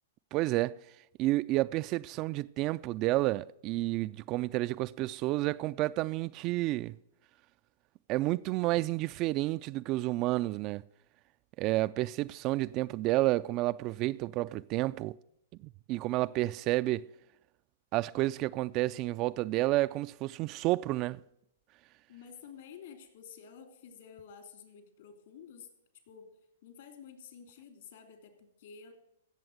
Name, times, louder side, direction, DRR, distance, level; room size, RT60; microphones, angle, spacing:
voice 1, 0.3-0.8 1.2-6.9 8.1-10.8 11.6-15.1 15.6-17.1 17.9-21.2, right 18 dB, 35° right, 0.4 m, -30 dB
voice 2, 22.1-25.7 26.1-26.3 26.6-28.9, left 7 dB, 65° left, 3.1 m, -51 dB
16.0 x 7.1 x 6.5 m
hypercardioid pair, 120°, 0 cm